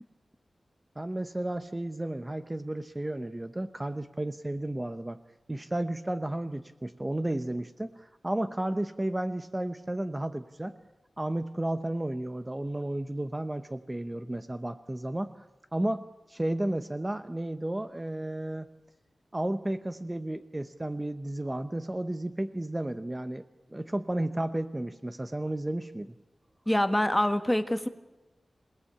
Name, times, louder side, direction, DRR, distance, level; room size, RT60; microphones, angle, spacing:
voice 1, 1.0-5.2 5.5-10.8 11.2-15.5 15.7-18.7 19.3-23.4 23.7-26.1, right 1 dB, 20° right, 10 dB, 0.9 m, -33 dB
voice 2, 26.7-27.9, left 1 dB, 10° left, 9 dB, 1.7 m, -25 dB
27.0 x 19.0 x 8.7 m, 1.1 s
wide cardioid pair, 95°, 0 cm